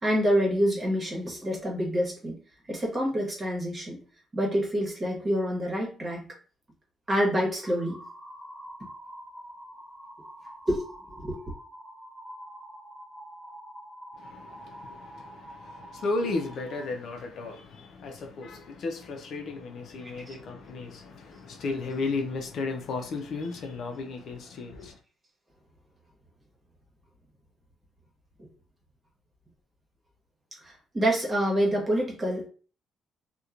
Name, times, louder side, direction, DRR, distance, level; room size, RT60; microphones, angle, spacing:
voice 1, 0.0-2.4 2.7-4.0 4.3-6.3 7.1-8.0 10.7-10.8 11.2-11.4 20.3-20.4 28.4-28.5 30.6-32.5, equal, 35° right, 1.1 m, -27 dB
sound 1, 7.6-16.9, equal, ahead, 0.9 m, -46 dB
voice 2, 14.2-25.0, left 3 dB, 65° left, 0.5 m, -34 dB
2.9 x 2.2 x 2.4 m
cardioid pair, 90°, 0 cm